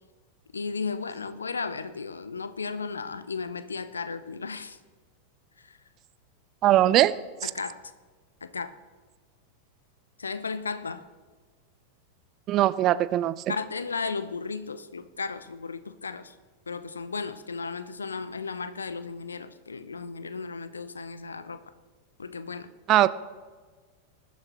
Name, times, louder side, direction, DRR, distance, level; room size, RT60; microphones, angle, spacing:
voice 1, 0.5-4.8 5.6-5.8 7.4-7.8 8.4-8.7 10.2-11.0 13.5-16.4 16.7-21.6 22.2-22.7, left 4 dB, 75° left, 13 dB, 0.6 m, -35 dB
voice 2, 6.6-7.1 7.4-7.5 12.5-13.4 22.9-23.1, right 14 dB, 35° right, 16 dB, 0.5 m, -20 dB
20.0 x 11.5 x 3.0 m, 1.4 s
figure-of-eight pair, 90°, 0 cm